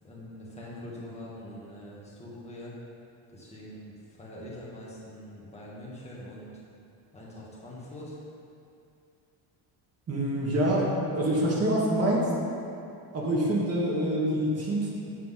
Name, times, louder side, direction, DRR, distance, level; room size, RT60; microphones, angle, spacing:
voice 1, 0.0-2.7 3.3-6.5 7.1-8.2 10.5-10.6, left 1 dB, 15° left, -7 dB, 2.0 m, -43 dB
voice 2, 10.1-12.3 13.1-15.0, right 1 dB, 35° right, -3 dB, 1.8 m, -26 dB
8.0 x 7.8 x 3.9 m, 2.5 s
cardioid pair, 140°, 45 cm